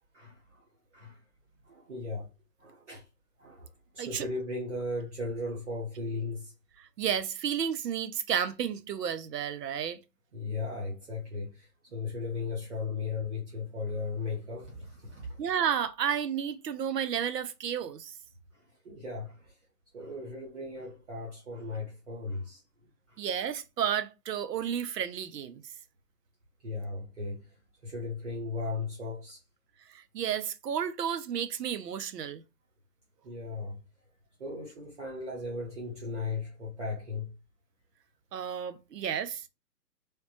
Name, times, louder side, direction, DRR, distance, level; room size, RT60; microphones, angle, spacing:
voice 1, 0.1-0.7 0.9-1.2 1.6-2.3 2.6-3.1 3.4-3.7 3.9-6.5 10.3-15.4 18.5-19.6 19.9-22.6 23.1-23.2 26.6-27.6 27.8-29.4 33.2-33.8 34.4-37.3, left 3 dB, 45° right, 0.9 m, -37 dB
voice 2, 6.8-10.0 15.4-18.1 23.2-25.6 29.9-32.4 38.3-39.4, right 8 dB, 90° right, 0.6 m, -32 dB
3.3 x 2.1 x 2.7 m
hypercardioid pair, 175°, 48 cm